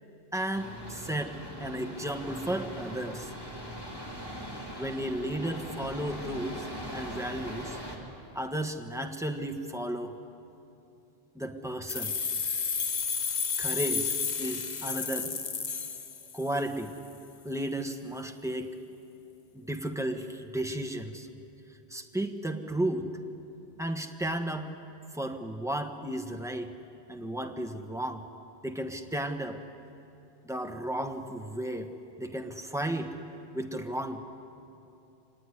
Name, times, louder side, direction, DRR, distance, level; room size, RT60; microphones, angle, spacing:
voice 1, 0.3-3.3 4.8-7.8 8.3-10.1 11.3-12.1 13.6-15.6 16.3-17.0 17.4-18.8 19.5-21.3 21.9-23.1 23.8-24.7 25.1-26.7 27.1-28.2 28.6-29.6 30.4-31.9 32.2-33.2 33.5-34.2, right 1 dB, 5° right, 4 dB, 1.2 m, -34 dB
sound 1, 0.5-8.0, equal, 20° left, 3.0 m, -41 dB
sound 2, 11.9-16.7, left 6 dB, 45° left, 0.9 m, -32 dB
25.5 x 18.5 x 9.8 m, 2.8 s
omnidirectional pair, 1.1 m